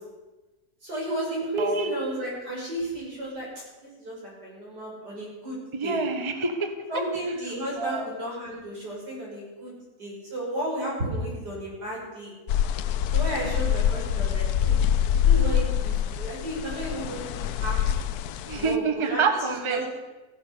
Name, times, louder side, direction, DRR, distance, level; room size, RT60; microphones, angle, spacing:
voice 1, 0.8-3.5 3.8-6.0 6.9-9.7 10.0-12.3 13.1-14.8 15.1-17.8 18.5-19.2 19.5-19.8, right 1 dB, 85° right, -4 dB, 6.6 m, -33 dB
voice 2, 1.6-1.9 5.7-7.0 7.8-8.1 18.5-20.0, right 4 dB, 20° right, 7 dB, 1.1 m, -27 dB
sound 1, 12.5-18.8, left 9 dB, 70° left, 1.1 m, -25 dB
15.0 x 11.0 x 6.7 m, 1.2 s
omnidirectional pair, 1.7 m